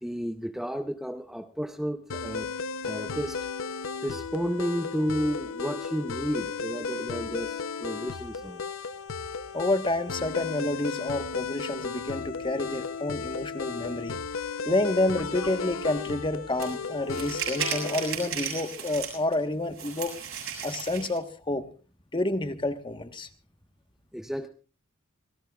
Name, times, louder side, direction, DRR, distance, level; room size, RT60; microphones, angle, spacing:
voice 1, 0.0-2.6 2.8-3.5 4.0-8.7 24.1-24.5, equal, ahead, 6 dB, 0.7 m, -32 dB
sound 1, 2.1-18.1, left 5 dB, 65° left, 0.7 m, -35 dB
voice 2, 9.5-14.2 14.6-20.1 20.6-21.6 22.1-23.3, left 2 dB, 25° left, 8 dB, 1.3 m, -29 dB
sound 2, 16.6-16.7 17.1-19.3 19.8-21.2, right 7 dB, 70° right, 7.5 m, -34 dB
27.0 x 18.0 x 2.4 m, 0.35 s
head